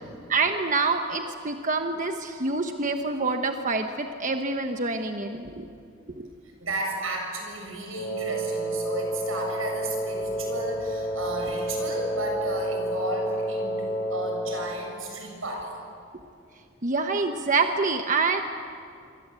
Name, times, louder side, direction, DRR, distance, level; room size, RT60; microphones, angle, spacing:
voice 1, 0.3-5.7 6.1-6.3 16.8-18.4, right 3 dB, 40° right, 5 dB, 1.2 m, -26 dB
voice 2, 6.6-15.7, right 2 dB, 90° right, 2 dB, 7.7 m, -33 dB
Wind instrument woodwind instrument, 7.9-14.7, right 1 dB, 85° left, 6.5 m, -30 dB
27.0 x 25.0 x 8.3 m, 2.4 s
head